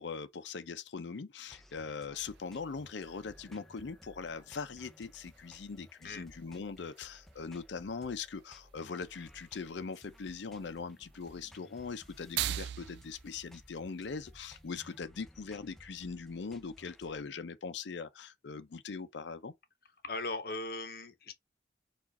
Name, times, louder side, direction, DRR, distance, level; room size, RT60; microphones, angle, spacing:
voice 1, 0.0-19.5, left 5 dB, 75° left, 0.5 m, -41 dB
sound 1, 1.5-17.2, equal, ahead, 0.4 m, -58 dB
sound 2, 2.3-15.0, right 12 dB, 65° right, 0.3 m, -46 dB
voice 2, 20.0-21.3, left 2 dB, 55° left, 0.9 m, -38 dB
4.7 x 2.5 x 4.0 m
head